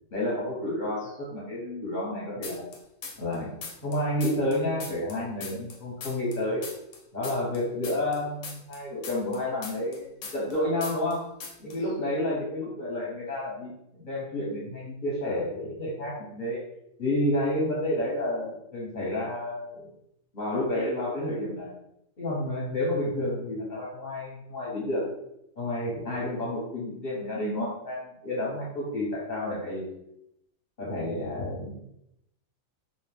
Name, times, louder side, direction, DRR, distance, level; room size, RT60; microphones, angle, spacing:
voice 1, 0.1-2.6 3.2-3.5 3.8-6.6 7.1-11.3 11.6-16.6 17.0-19.9 20.3-21.7 22.2-25.0 25.6-29.8 30.8-31.9, left 1 dB, 40° left, -7 dB, 0.8 m, -30 dB
sound 1, 2.4-3.4 3.6-6.4 6.6-10.6 10.8-11.2 11.4-11.8, left 4 dB, 70° left, 0.8 m, -40 dB
2.5 x 2.1 x 3.2 m, 0.79 s
omnidirectional pair, 1.4 m